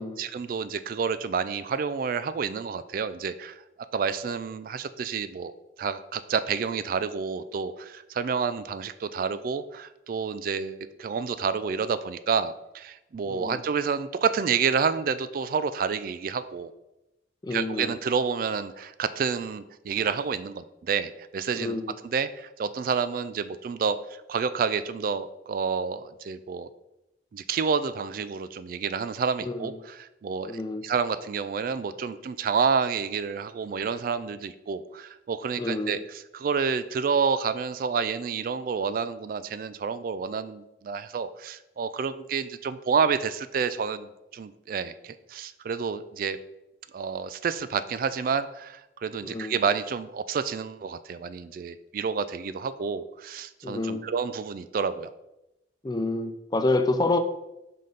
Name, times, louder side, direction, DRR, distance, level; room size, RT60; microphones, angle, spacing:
voice 1, 0.0-3.6 3.9-5.5 5.8-16.7 17.5-21.8 22.0-26.7 27.3-46.4 46.9-55.1, right 6 dB, 50° right, 13 dB, 0.3 m, -29 dB
voice 2, 13.2-13.6 17.4-17.9 21.5-22.0 29.4-29.8 30.5-30.8 35.6-36.0 49.2-49.6 53.6-54.0 55.8-57.2, left 2 dB, 25° left, 9 dB, 0.4 m, -28 dB
5.7 x 5.3 x 3.9 m, 0.93 s
head